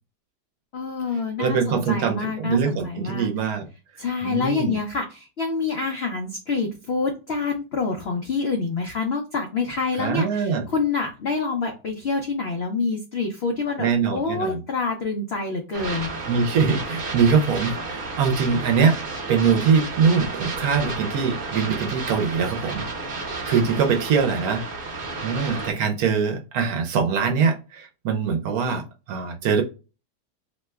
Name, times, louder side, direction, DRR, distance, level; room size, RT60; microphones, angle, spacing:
voice 1, 0.7-3.3 4.0-16.1, left 4 dB, 75° left, 0.5 m, -27 dB
voice 2, 1.4-3.7 4.2-4.8 10.0-10.6 13.8-14.6 16.3-19.0 19.3-22.8 23.5-24.9 25.2-29.6, right 6 dB, 70° right, 1.0 m, -23 dB
sound 1, 15.7-25.7, right 3 dB, 40° right, 0.8 m, -32 dB
2.9 x 2.2 x 3.3 m
omnidirectional pair, 1.8 m